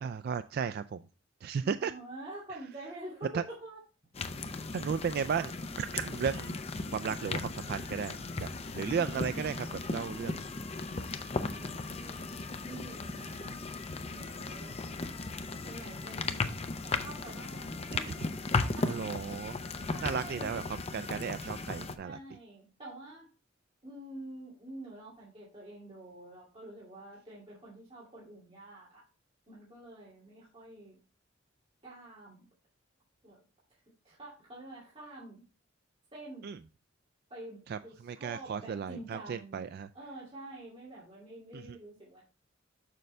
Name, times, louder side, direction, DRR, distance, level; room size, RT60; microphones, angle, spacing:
voice 1, 0.0-1.1 1.4-1.9 3.3-3.4 4.7-6.6 6.9-8.5 8.7-10.3 10.7-10.8 13.4-13.6 18.8-19.6 20.0-22.2 36.4-36.6 37.7-39.9 41.5-41.8, right 6 dB, 55° right, 11 dB, 0.3 m, -35 dB
voice 2, 1.6-3.8 8.9-10.1 11.4-13.6 14.0-14.8 15.6-16.5 16.8-18.2 18.6-19.0 19.3-19.5 19.9-20.6 22.0-23.3 23.8-29.0 29.5-31.0 31.8-32.5 33.2-33.4 34.0-35.4 36.1-36.6 37.3-42.2, right 1 dB, 30° right, -7 dB, 2.5 m, -47 dB
sound 1, 4.1-22.0, left 3 dB, 30° left, 0.6 m, -36 dB
6.6 x 6.5 x 3.2 m, 0.34 s
head